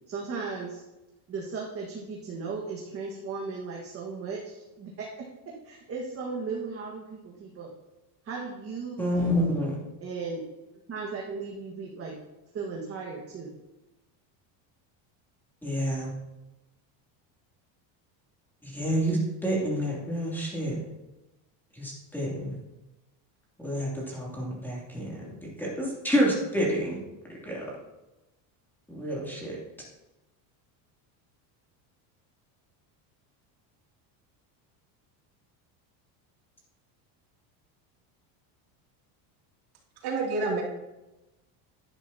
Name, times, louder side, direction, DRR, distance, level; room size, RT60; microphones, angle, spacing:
voice 1, 0.1-0.8 1.3-5.1 5.4-7.7 8.2-9.5 10.0-10.4 10.9-12.2 12.5-13.5, right 4 dB, 30° right, -2 dB, 1.5 m, -36 dB
voice 2, 9.0-9.8 15.6-16.1 18.6-20.8 21.7-22.6 23.6-27.0 27.3-27.6 28.9-29.6, equal, 5° left, -4 dB, 2.7 m, -29 dB
voice 3, 40.0-40.6, right 3 dB, 55° right, -2 dB, 2.7 m, -28 dB
11.0 x 10.5 x 2.8 m, 1.0 s
cardioid pair, 145°, 45 cm